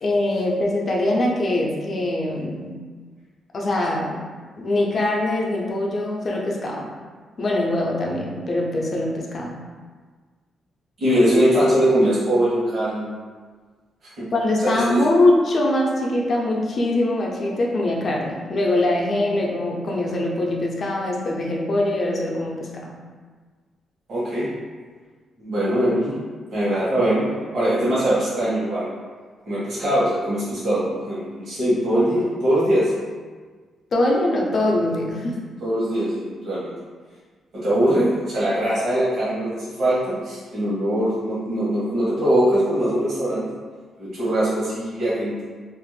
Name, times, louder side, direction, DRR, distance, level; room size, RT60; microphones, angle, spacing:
voice 1, 0.0-2.8 3.5-4.2 4.5-6.9 7.4-9.6 14.3-23.0 33.9-35.4, left 1 dB, 45° left, -2 dB, 0.5 m, -22 dB
voice 2, 11.0-13.1 14.2-14.3 14.7-15.0 24.1-24.5 25.4-26.1 26.5-27.2 27.5-28.9 29.5-32.9 35.6-36.7 37.5-43.5 44.0-45.4, equal, 60° right, -10 dB, 1.0 m, -21 dB
2.5 x 2.0 x 3.1 m, 1.5 s
cardioid pair, 95°, 0 cm